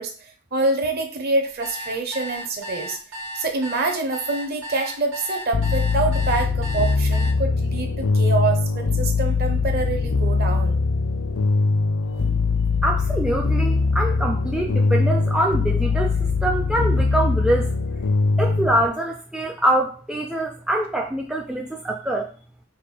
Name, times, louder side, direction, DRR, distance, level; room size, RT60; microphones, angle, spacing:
voice 1, 0.0-3.0 3.3-10.8, right 3 dB, 45° right, 3 dB, 0.8 m, -26 dB
sound 1, 1.4-7.3, equal, 65° right, 1.2 m, -34 dB
sound 2, 5.5-18.9, left 4 dB, 70° left, 0.5 m, -21 dB
voice 2, 12.8-17.7 18.4-22.3, right 1 dB, 5° right, 0 dB, 0.3 m, -24 dB
5.3 x 2.2 x 4.1 m, 0.41 s
head